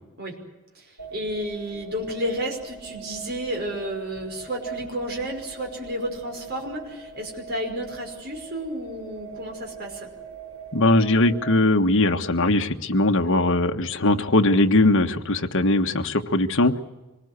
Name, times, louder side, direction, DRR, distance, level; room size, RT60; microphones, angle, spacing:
voice 1, 0.7-10.1, equal, 45° right, 2 dB, 5.5 m, -31 dB
sound 1, 1.0-11.4, right 5 dB, 75° right, 8.0 m, -42 dB
voice 2, 10.7-16.8, left 2 dB, 60° left, 6 dB, 1.4 m, -20 dB
25.5 x 19.5 x 8.2 m, 1.1 s
head